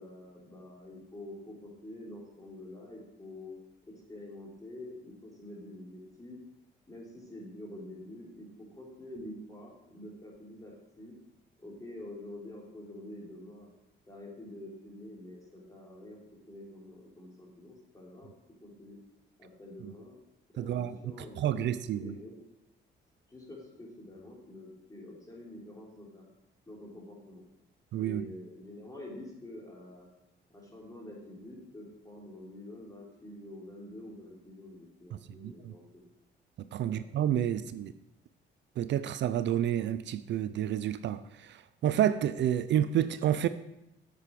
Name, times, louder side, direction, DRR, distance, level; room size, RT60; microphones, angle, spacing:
voice 1, 0.0-3.6 4.1-6.4 6.9-8.5 8.8-11.1 11.6-13.7 14.1-16.2 16.5-18.3 18.6-19.0 19.4-20.2 20.5-22.3 23.3-26.2 26.7-27.4 28.0-30.1 30.5-36.0 36.8-37.0 37.5-37.6, left 1 dB, 15° left, 3.7 m, -47 dB
voice 2, 20.6-21.0 21.4-22.1 27.9-28.2 35.4-35.7 36.7-37.9 38.8-41.6 41.8-43.5, right 10 dB, 65° right, 0.5 m, -29 dB
8.3 x 7.7 x 4.8 m
cardioid pair, 90°, 20 cm